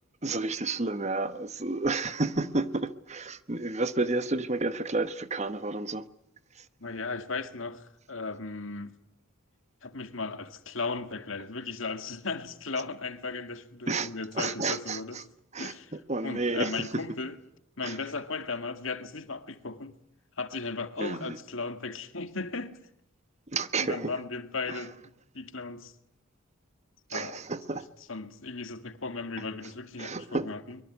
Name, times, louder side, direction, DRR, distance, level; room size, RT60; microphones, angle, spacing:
voice 1, 0.2-6.1 6.5-6.6 13.9-15.2 15.5-17.0 17.8-18.0 21.0-21.4 23.5-24.1 24.7-24.8 27.1-27.9 30.0-30.5, right 3 dB, 35° right, 1.2 m, -31 dB
voice 2, 6.8-8.9 9.8-15.2 15.6-15.9 16.2-17.4 17.8-20.0 20.4-22.8 23.8-25.0 25.3-25.9 27.1-27.4 28.1-30.8, left 4 dB, 70° left, 2.1 m, -36 dB
24.0 x 23.0 x 9.5 m
head